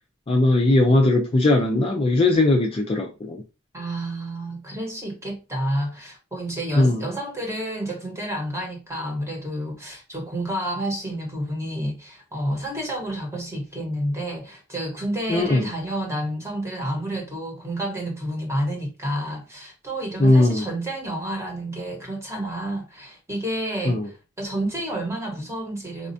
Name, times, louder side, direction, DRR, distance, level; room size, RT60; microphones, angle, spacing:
voice 1, 0.3-3.4 6.8-7.0 15.3-15.7 20.2-20.6 23.9-24.1, left 2 dB, 25° left, 0.4 m, -19 dB
voice 2, 3.7-26.1, right 1 dB, 15° right, 1.0 m, -30 dB
4.2 x 2.3 x 2.6 m
head